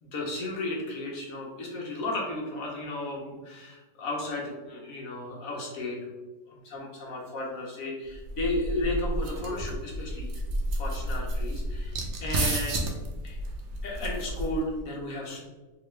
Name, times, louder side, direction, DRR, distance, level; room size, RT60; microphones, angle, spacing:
voice 1, 0.0-6.1 6.5-10.3 10.7-12.9 13.2-13.4 13.8-15.4, left 2 dB, 60° left, -1 dB, 1.1 m, -34 dB
sound 1, 8.1-14.8, right 1 dB, 75° right, 0.6 m, -31 dB
3.4 x 2.9 x 3.1 m, 1.2 s
omnidirectional pair, 1.9 m